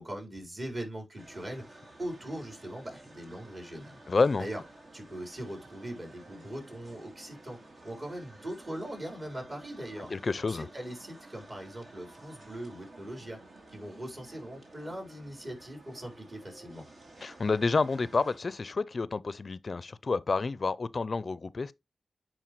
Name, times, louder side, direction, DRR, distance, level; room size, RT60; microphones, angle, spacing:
voice 1, 0.0-4.0 4.4-4.6 4.9-10.1 10.5-13.4 13.7-16.8, right 1 dB, 45° right, 4.2 m, -41 dB
sound 1, 1.2-18.4, right 2 dB, 65° right, 1.9 m, -53 dB
voice 2, 4.1-4.4 10.1-10.7 17.2-21.7, left 4 dB, 60° left, 0.4 m, -29 dB
10.0 x 4.5 x 3.0 m
cardioid pair, 40°, 0 cm